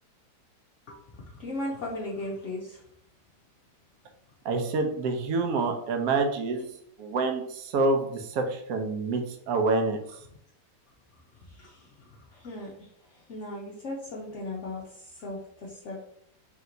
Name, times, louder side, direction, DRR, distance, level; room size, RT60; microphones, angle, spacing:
voice 1, 0.9-2.8 11.3-16.0, left 1 dB, 70° left, -3 dB, 0.7 m, -38 dB
voice 2, 4.4-6.7 7.0-10.0, right 3 dB, 65° right, 5 dB, 0.9 m, -27 dB
3.4 x 2.9 x 3.8 m, 0.70 s
omnidirectional pair, 2.0 m